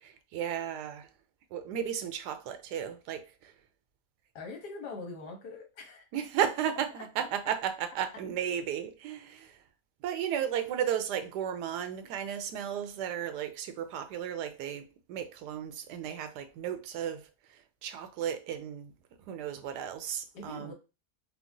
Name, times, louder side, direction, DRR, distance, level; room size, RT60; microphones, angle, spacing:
voice 1, 0.0-1.1 1.5-3.5 6.1-9.6 10.0-17.3 17.8-18.9 19.3-20.7, right 9 dB, 85° right, 1.2 m, -34 dB
voice 2, 4.3-6.1 7.0-7.1 20.3-20.7, left 3 dB, 85° left, 1.6 m, -43 dB
4.6 x 2.1 x 2.5 m
omnidirectional pair, 1.7 m